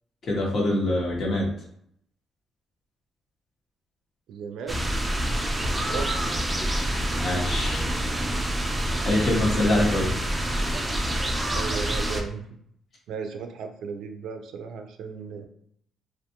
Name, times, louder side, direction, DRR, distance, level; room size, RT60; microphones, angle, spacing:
voice 1, 0.2-1.5 7.2-7.9 9.0-10.1, left 1 dB, 50° left, -2 dB, 1.0 m, -24 dB
voice 2, 4.3-4.9 5.9-6.1 9.5-10.0 11.5-12.5 13.1-15.5, right 6 dB, 80° right, 6 dB, 0.4 m, -35 dB
sound 1, 4.7-12.2, right 1 dB, 10° right, 0.4 m, -27 dB
2.4 x 2.2 x 2.8 m, 0.69 s
cardioid pair, 90°, 0 cm